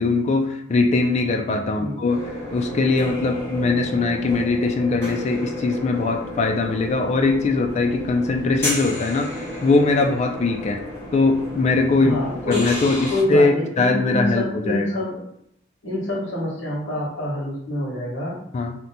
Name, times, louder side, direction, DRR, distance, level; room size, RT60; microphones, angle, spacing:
voice 1, 0.0-9.3 9.6-10.8 11.1-12.2 12.5-14.9 18.5-18.8, left 3 dB, 35° left, 3 dB, 0.3 m, -21 dB
sound 1, 2.1-13.2, left 1 dB, 10° left, 1.4 m, -32 dB
voice 2, 12.0-12.7 13.1-15.2 15.8-18.4, left 1 dB, 65° left, -4 dB, 1.3 m, -26 dB
2.9 x 2.1 x 4.0 m, 0.73 s
head